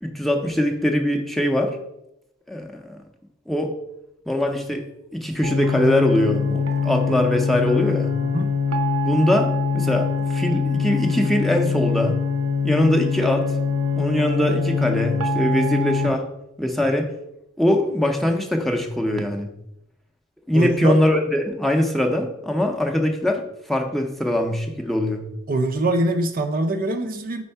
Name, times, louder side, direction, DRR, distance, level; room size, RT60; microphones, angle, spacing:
voice 1, 0.0-1.8 2.5-3.0 3.5-3.7 4.3-4.8 5.1-8.1 9.0-12.2 12.6-13.5 14.0-16.3 16.6-17.1 17.6-19.5 20.5-25.2, left 1 dB, ahead, 3 dB, 0.6 m, -22 dB
sound 1, 5.4-16.1, left 5 dB, 85° right, 0.8 m, -23 dB
voice 2, 20.5-21.0 25.5-27.4, right 2 dB, 40° right, 7 dB, 0.5 m, -23 dB
4.4 x 4.4 x 5.5 m, 0.81 s
head